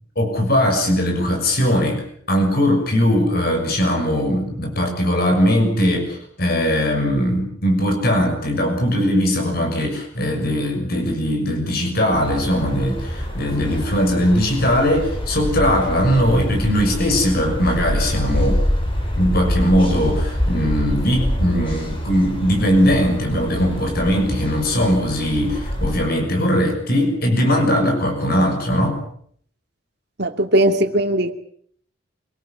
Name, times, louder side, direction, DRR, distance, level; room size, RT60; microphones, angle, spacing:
voice 1, 0.1-18.6 19.2-29.0, equal, 45° left, 3 dB, 6.6 m, -20 dB
sound 1, 12.1-26.0, equal, 25° left, 5.7 m, -25 dB
voice 2, 30.2-31.3, right 1 dB, 50° right, 7 dB, 2.1 m, -18 dB
25.5 x 19.0 x 8.7 m, 0.62 s
head